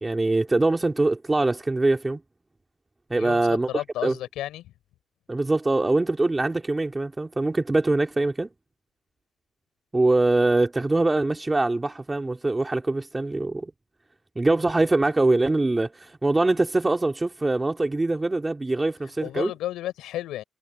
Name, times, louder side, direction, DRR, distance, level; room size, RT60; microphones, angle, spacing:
voice 1, 0.0-2.2 3.1-3.7 4.0-4.1 5.3-8.5 9.9-13.7 14.3-19.5, right 2 dB, 20° right, 3.0 m, -23 dB
voice 2, 3.2-4.7 19.2-20.4, left 14 dB, 90° left, 4.7 m, -32 dB
cardioid pair, 90°, 0 cm